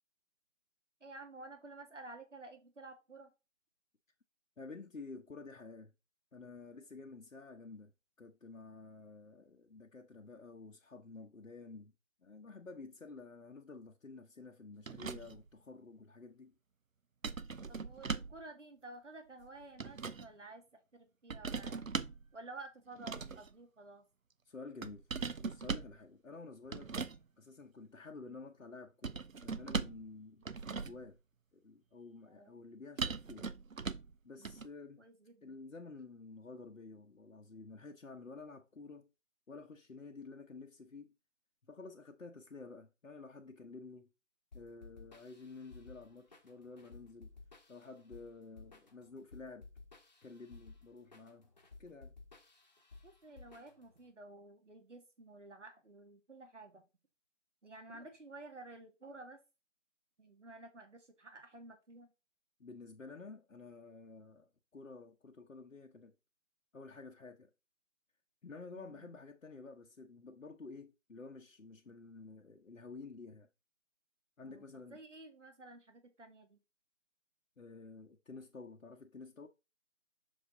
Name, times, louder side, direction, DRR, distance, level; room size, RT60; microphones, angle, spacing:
voice 1, 1.0-3.3 17.7-21.8 22.3-24.0 32.3-32.6 34.4-34.7 35.0-35.6 53.0-56.8 57.6-59.4 60.2-62.1 68.7-69.1 74.5-74.6 74.9-76.6, right 2 dB, 65° right, 2.2 m, -52 dB
voice 2, 4.6-5.9 6.3-7.9 8.2-11.9 12.2-16.6 24.5-25.1 25.4-27.0 27.4-30.5 30.8-31.2 31.5-33.5 34.2-35.0 35.4-39.1 39.5-41.1 41.7-44.1 44.5-47.3 47.7-49.7 50.2-51.5 51.8-52.1 57.9-58.1 62.6-66.1 66.7-67.5 68.4-73.5 74.4-75.0 77.6-79.5, left 3 dB, 75° left, 1.0 m, -51 dB
sound 1, 14.9-15.5 17.2-18.4 19.4-20.3 21.3-22.3 23.0-23.5 24.8-26.0 26.7-27.2 29.0-30.1 30.4-31.1 33.0-34.1 34.4-34.7, right 5 dB, 85° right, 0.7 m, -40 dB
sound 2, 44.5-54.1, left 3 dB, 35° left, 1.1 m, -57 dB
6.5 x 5.1 x 3.9 m
figure-of-eight pair, 160°, 39 cm